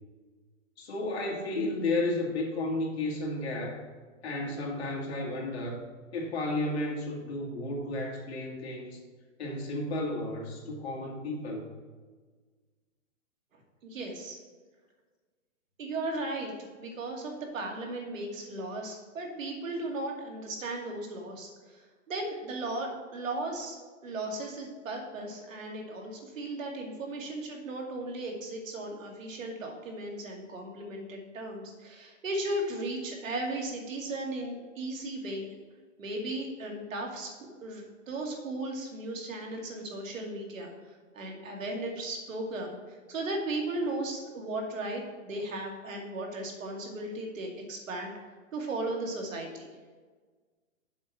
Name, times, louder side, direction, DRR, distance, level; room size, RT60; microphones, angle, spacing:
voice 1, 0.8-3.8 4.2-5.8 6.1-9.0 9.4-11.7, left 2 dB, 50° left, -2 dB, 2.1 m, -32 dB
voice 2, 13.8-14.4 15.8-23.8 24.0-35.5 36.0-37.3 37.6-40.7 41.1-48.1 48.5-49.7, right 2 dB, 80° right, 1 dB, 2.3 m, -36 dB
7.3 x 5.1 x 6.0 m, 1.4 s
hypercardioid pair, 170°, 39 cm